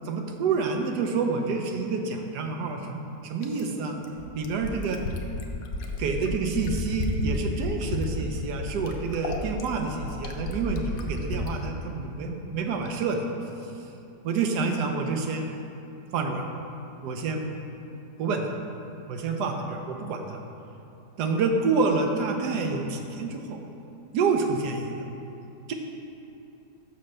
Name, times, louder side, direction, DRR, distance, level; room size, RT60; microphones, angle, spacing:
voice 1, 0.1-4.0 4.3-5.0 6.0-13.2 14.2-15.5 16.1-16.4 17.0-17.5 18.2-18.5 19.1-20.4 21.2-23.6 24.1-24.9 25.7-25.8, right 4 dB, 75° right, 4 dB, 1.2 m, -28 dB
Fill (with liquid), 3.4-11.5 12.9-13.0, left 2 dB, 75° left, 1.2 m, -32 dB
5.9 x 4.3 x 6.4 m, 2.9 s
omnidirectional pair, 1.8 m